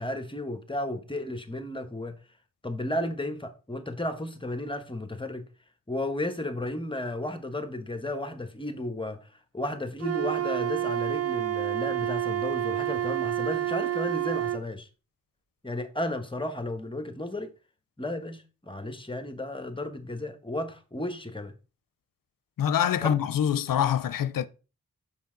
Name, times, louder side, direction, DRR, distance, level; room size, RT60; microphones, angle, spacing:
voice 1, 0.0-2.2 2.6-5.5 5.9-9.3 9.5-14.9 15.6-17.5 18.0-21.5 23.0-23.1, left 1 dB, 15° left, 1.2 m, -33 dB
Wind instrument woodwind instrument, 10.0-14.6, right 12 dB, 45° right, 0.8 m, -29 dB
voice 2, 22.6-24.5, left 9 dB, 70° left, 0.6 m, -25 dB
5.5 x 5.3 x 3.8 m
cardioid pair, 45°, 34 cm